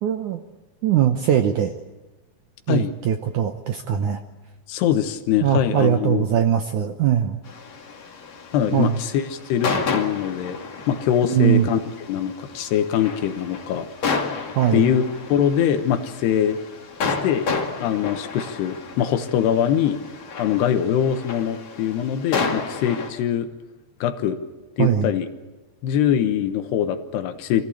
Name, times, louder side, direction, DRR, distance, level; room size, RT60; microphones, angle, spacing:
voice 1, 0.0-0.4 0.8-1.7 2.7-4.2 5.4-7.4 8.7-9.0 11.3-11.7 14.6-14.8 24.8-25.1, right 10 dB, 75° right, 6 dB, 1.8 m, -21 dB
voice 2, 4.7-6.2 8.5-10.6 10.9-11.8 12.1-13.9 14.7-15.0 15.3-16.6 17.2-17.5 17.8-20.0 20.4-23.5 24.0-24.4 24.8-25.3 25.8-27.7, left 9 dB, 80° left, 8 dB, 3.3 m, -22 dB
sound 1, 7.5-23.1, left 4 dB, 50° left, 3.1 m, -31 dB
25.0 x 16.0 x 8.5 m, 1.2 s
omnidirectional pair, 4.7 m